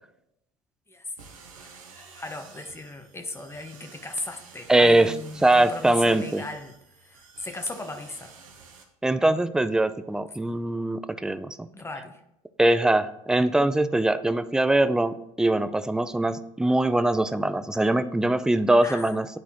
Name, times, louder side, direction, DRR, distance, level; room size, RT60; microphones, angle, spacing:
sound 1, 1.2-8.8, right 5 dB, 85° right, 1.0 m, -50 dB
voice 1, 2.0-6.7 7.0-8.3 11.7-12.2 18.8-19.2, left 2 dB, 15° left, 6 dB, 1.0 m, -37 dB
voice 2, 4.7-5.1 5.4-6.4 9.0-11.7 12.6-19.3, right 1 dB, 5° right, 12 dB, 0.4 m, -22 dB
10.5 x 4.1 x 2.9 m, 0.81 s
hypercardioid pair, 75°, 17 cm